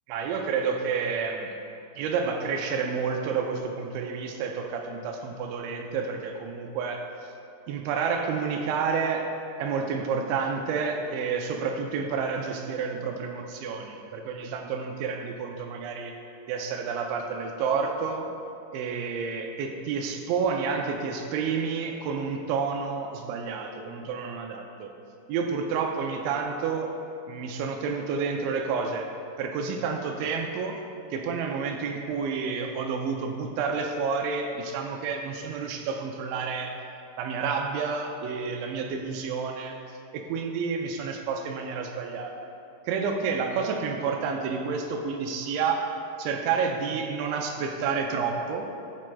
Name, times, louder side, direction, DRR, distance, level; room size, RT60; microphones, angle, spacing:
voice 1, 0.1-1.5 2.0-7.0 7.7-16.2 16.5-18.3 18.7-24.9 25.3-27.0 27.3-29.1 29.4-30.8 31.1-36.8 37.2-39.8 40.1-42.4 42.9-45.9 46.2-48.7, right 5 dB, 80° right, 3 dB, 2.7 m, -29 dB
16.0 x 6.2 x 2.3 m, 2.6 s
omnidirectional pair, 5.6 m